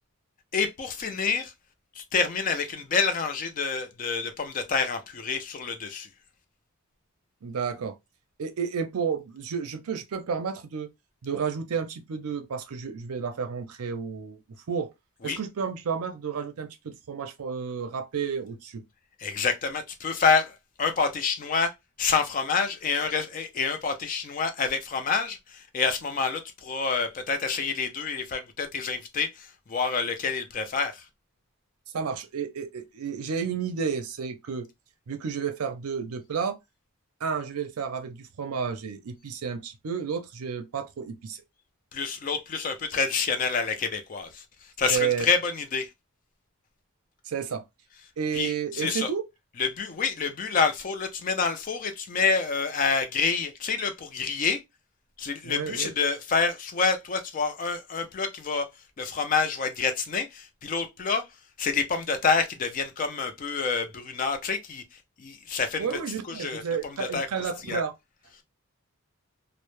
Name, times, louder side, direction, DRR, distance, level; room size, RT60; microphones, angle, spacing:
voice 1, 0.5-1.5 2.0-6.1 15.2-15.4 19.2-21.7 22.0-31.0 41.9-44.4 44.8-45.9 48.3-49.1 49.6-54.6 55.2-58.7 59.0-61.3 61.6-64.8 65.2-66.0 66.3-66.6 67.0-67.3 67.7-67.8, left 5 dB, 35° left, 0.3 m, -27 dB
voice 2, 7.4-8.0 8.4-10.9 11.2-14.4 14.7-14.9 15.2-18.8 31.9-34.7 35.1-36.6 37.2-41.4 44.9-45.3 47.3-47.6 48.2-49.2 55.4-55.9 65.8-67.9, right 6 dB, 80° right, 0.5 m, -31 dB
2.0 x 2.0 x 2.9 m
head